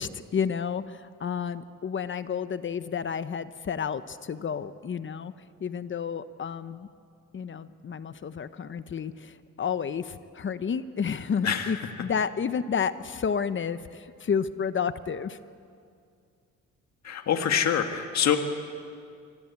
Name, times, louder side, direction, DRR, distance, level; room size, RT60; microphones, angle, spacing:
voice 1, 0.0-5.3 5.6-6.9 7.3-15.4, left 7 dB, 40° left, 13 dB, 0.9 m, -31 dB
voice 2, 17.0-18.4, left 8 dB, 60° left, 6 dB, 1.9 m, -25 dB
26.0 x 18.0 x 8.5 m, 2.3 s
cardioid pair, 90°, 30 cm